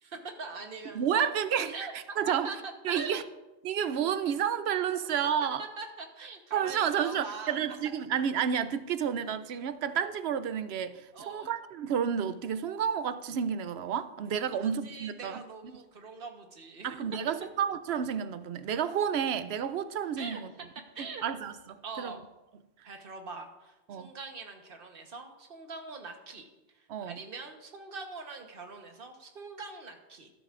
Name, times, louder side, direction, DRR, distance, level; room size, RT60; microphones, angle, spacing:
voice 1, 0.0-1.4 1.7-1.9 2.4-2.6 2.9-3.2 5.6-7.6 11.1-11.5 14.5-16.9 20.2-20.4 20.9-21.2 21.8-22.2 22.8-30.3, right 4 dB, 60° right, 1.3 m, -43 dB
voice 2, 0.9-2.5 2.8-3.2 3.6-5.6 6.5-15.4 16.8-20.5 21.0-22.2 22.8-22.9 23.9-24.1 26.9-27.2, right 8 dB, 75° right, 0.8 m, -31 dB
13.0 x 11.0 x 2.5 m
omnidirectional pair, 1.1 m